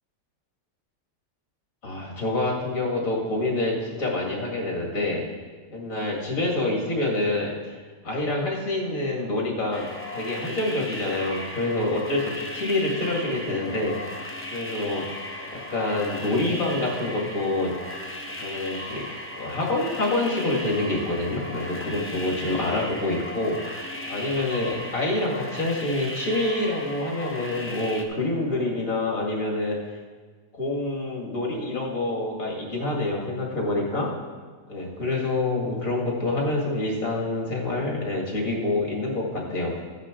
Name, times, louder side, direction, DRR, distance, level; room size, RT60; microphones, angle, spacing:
voice 1, 1.8-5.2 5.7-7.7 8.0-9.9 10.1-14.2 14.5-15.0 15.5-17.7 18.4-19.1 19.4-29.8 30.5-34.1 34.7-39.7, left 2 dB, 50° left, -2 dB, 2.5 m, -27 dB
sound 1, 9.7-28.0, left 1 dB, 10° left, 0.6 m, -36 dB
13.5 x 9.7 x 3.8 m, 1.5 s
omnidirectional pair, 1.8 m